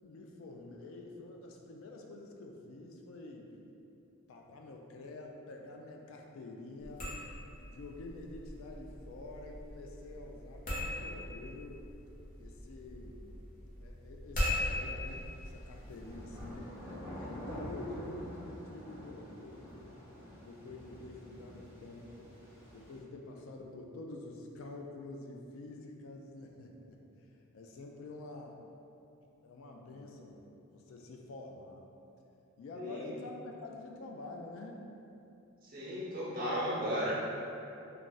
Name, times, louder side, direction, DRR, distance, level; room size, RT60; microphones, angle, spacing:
voice 1, 0.0-3.5 4.3-7.1 7.6-11.8 12.4-13.2 13.8-19.7 20.3-22.4 22.7-27.0 27.5-28.6 29.4-30.4 30.7-31.9 32.6-34.9, left 2 dB, 70° left, 1 dB, 0.3 m, -47 dB
sound 1, 6.8-16.6, left 1 dB, 40° left, 0.7 m, -40 dB
sound 2, 15.0-23.0, equal, 10° right, 0.4 m, -48 dB
voice 2, 32.7-33.1 35.6-37.1, equal, 40° right, -8 dB, 0.8 m, -35 dB
2.4 x 2.3 x 3.9 m, 2.8 s
head